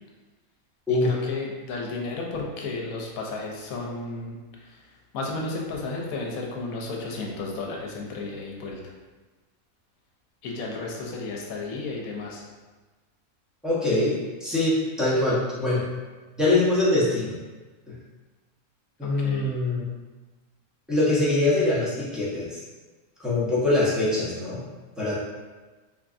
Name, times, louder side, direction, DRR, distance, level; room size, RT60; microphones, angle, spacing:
voice 1, 0.9-4.9 5.1-8.8 10.4-12.5 19.0-19.5, left 3 dB, 75° left, -1 dB, 1.1 m, -33 dB
voice 2, 13.6-15.8 16.4-17.4 17.9-18.0 19.0-19.9 20.9-22.6 23.2-24.6 25.0-25.1, left 2 dB, ahead, -10 dB, 0.6 m, -23 dB
3.5 x 3.2 x 2.5 m, 1.3 s
omnidirectional pair, 1.5 m